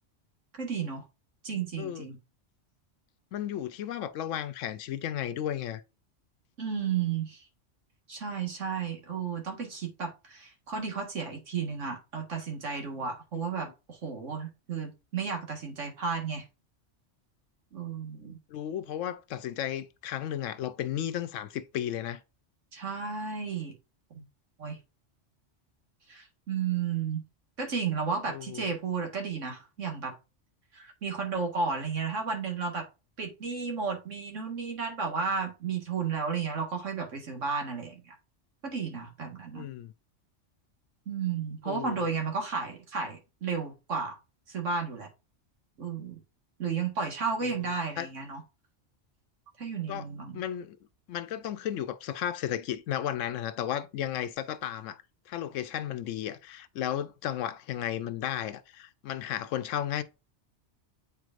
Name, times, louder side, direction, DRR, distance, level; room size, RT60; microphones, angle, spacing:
voice 1, 0.5-1.1 1.4-2.2 6.6-7.5 8.1-16.5 17.7-18.4 22.7-23.7 24.1-24.2 24.6-24.8 26.1-27.2 27.6-30.1 30.7-32.8 33.2-38.2 38.6-39.7 41.1-44.2 44.5-45.1 45.8-46.2 46.6-48.4 49.6-50.4, right 5 dB, 85° right, 1.9 m, -33 dB
voice 2, 1.8-2.1 3.3-5.8 13.3-13.5 18.5-22.2 28.3-28.7 39.5-39.9 41.7-42.0 47.4-47.6 48.0-48.1 49.9-50.1 50.3-50.8 51.1-60.0, left 11 dB, 85° left, 0.9 m, -34 dB
8.1 x 4.7 x 2.5 m
omnidirectional pair, 1.3 m